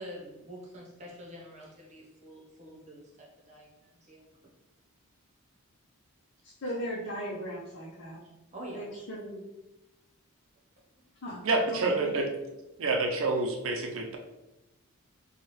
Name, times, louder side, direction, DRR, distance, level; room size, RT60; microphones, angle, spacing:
voice 1, 0.0-4.2 8.5-8.9 11.3-11.4, equal, 30° right, -2 dB, 0.9 m, -46 dB
voice 2, 6.6-8.2 8.7-9.4 11.2-11.4 11.7-12.2, equal, 55° left, -6 dB, 0.7 m, -37 dB
voice 3, 11.4-12.3 12.8-14.2, right 3 dB, 60° right, 2 dB, 0.6 m, -28 dB
4.5 x 2.3 x 3.1 m, 0.97 s
head